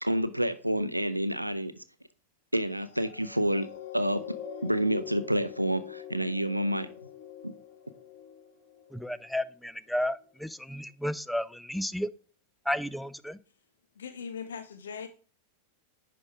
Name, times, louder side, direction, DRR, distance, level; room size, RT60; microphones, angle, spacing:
voice 1, 0.0-1.7 2.5-3.7 3.9-4.2 4.6-6.9 7.4-7.5, equal, 90° right, 0.5 m, -28 dB
sound 1, 2.8-9.5 10.1-10.3, left 9 dB, 50° left, 1.1 m, -44 dB
voice 2, 8.9-12.1 12.7-13.4, left 1 dB, ahead, 0.4 m, -32 dB
voice 3, 14.0-15.1, left 6 dB, 65° left, 0.6 m, -39 dB
10.5 x 4.8 x 3.5 m
figure-of-eight pair, 90°, 0 cm